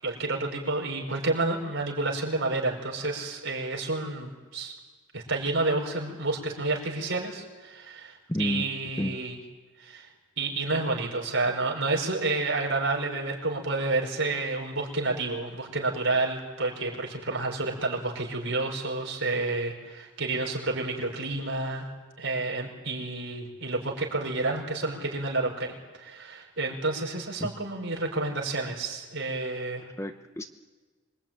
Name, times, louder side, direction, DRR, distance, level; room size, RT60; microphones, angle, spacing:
voice 1, 0.0-4.7 5.1-9.4 9.8-10.1 10.4-21.9 22.2-29.9, right 2 dB, 60° right, 0 dB, 5.4 m, -30 dB
voice 2, 8.3-8.7 9.0-9.2 27.4-27.5 30.0-30.5, left 1 dB, 15° left, 7 dB, 0.9 m, -30 dB
26.0 x 23.0 x 9.1 m, 1.4 s
head